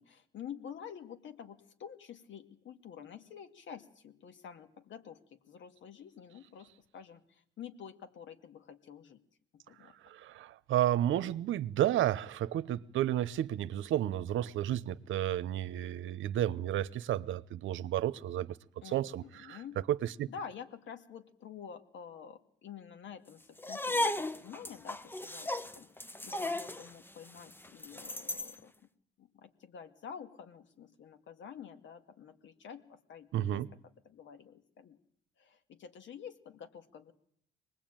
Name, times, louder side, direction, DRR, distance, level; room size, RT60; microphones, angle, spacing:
voice 1, 0.0-9.2 9.5-10.0 18.8-19.8 20.3-28.7 29.2-33.7 34.1-35.0 35.4-37.1, left 7 dB, 70° left, 2.3 m, -49 dB
voice 2, 9.8-18.6 18.8-19.6 19.9-20.3 33.3-33.7, right 12 dB, 80° right, 0.9 m, -32 dB
sound 1, 23.6-28.6, left 1 dB, 10° left, 0.9 m, -36 dB
24.0 x 20.0 x 9.0 m
cardioid pair, 90°, 20 cm